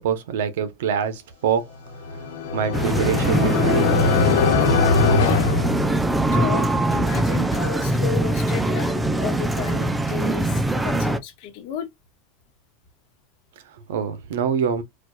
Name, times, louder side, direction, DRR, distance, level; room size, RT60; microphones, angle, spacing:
voice 1, 0.0-1.7 2.1-2.3 2.5-3.9 13.9-14.8, right 7 dB, 80° right, 0.8 m, -25 dB
sound 1, 1.9-6.5, left 4 dB, 80° left, 1.2 m, -21 dB
Arcade Ambiance, 2.7-11.2, right 1 dB, 5° right, 0.4 m, -22 dB
voice 2, 6.3-11.9, left 9 dB, 50° left, 1.1 m, -33 dB
4.4 x 2.4 x 2.3 m
supercardioid pair, 155°, 0 cm